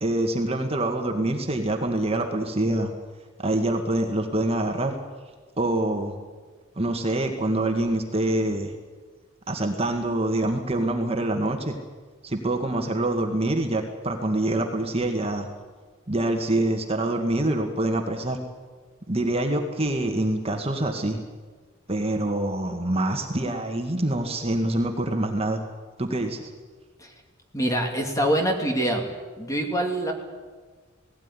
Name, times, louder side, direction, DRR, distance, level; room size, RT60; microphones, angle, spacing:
voice 1, 0.0-2.9 3.4-4.9 5.6-6.2 6.8-8.7 9.5-11.8 12.2-15.5 16.1-18.4 19.1-21.2 21.9-25.6 26.0-26.5, right 1 dB, 30° right, 4 dB, 1.8 m, -25 dB
voice 2, 27.5-29.1 29.4-30.1, right 1 dB, 15° left, 3 dB, 2.6 m, -24 dB
18.0 x 17.0 x 9.9 m, 1.4 s
head